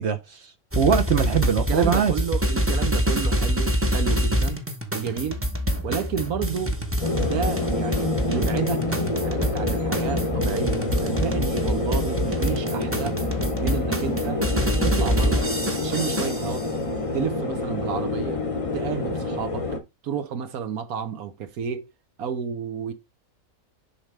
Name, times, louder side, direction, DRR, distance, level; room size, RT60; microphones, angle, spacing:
voice 1, 0.0-2.1, right 7 dB, 55° right, 0.8 m, -22 dB
sound 1, 0.7-16.6, equal, 10° right, 0.7 m, -26 dB
voice 2, 1.7-4.6 4.9-5.4 5.8-6.8 7.2-13.2 13.6-14.4 14.8-15.5 15.8-16.7 17.1-18.5 18.7-19.7 20.0-21.9 22.2-22.9, right 7 dB, 80° right, 1.3 m, -31 dB
sound 2, 7.0-19.8, left 2 dB, 30° left, 0.7 m, -27 dB
7.1 x 5.2 x 3.3 m
omnidirectional pair, 1.5 m